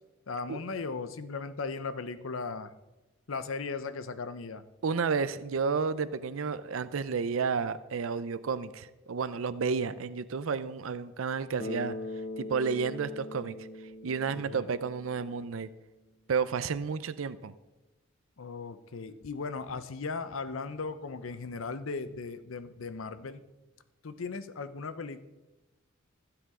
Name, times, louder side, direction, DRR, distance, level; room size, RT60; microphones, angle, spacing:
voice 1, 0.3-2.7 3.3-4.6 14.3-14.7 18.4-23.4 24.0-25.2, left 4 dB, 80° left, 12 dB, 0.7 m, -37 dB
voice 2, 4.8-11.9 12.4-13.5 14.0-15.7 16.3-17.5, right 5 dB, 80° right, 14 dB, 0.5 m, -31 dB
Bass guitar, 11.6-15.8, left 2 dB, 40° left, 0.9 m, -41 dB
15.5 x 7.9 x 3.7 m, 1.1 s
head